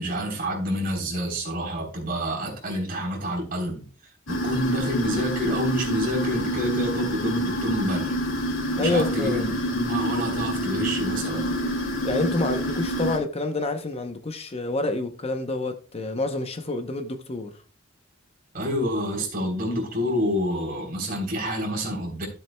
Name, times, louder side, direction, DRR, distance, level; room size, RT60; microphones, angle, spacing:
voice 1, 0.0-3.8 4.3-8.2 8.8-11.5 18.5-22.3, equal, 45° right, 3.5 m, -28 dB
sound 1, 4.3-13.2, equal, 90° left, 2.3 m, -27 dB
voice 2, 8.8-9.5 12.0-17.5, left 2 dB, 30° left, 0.7 m, -27 dB
13.5 x 7.5 x 2.2 m
head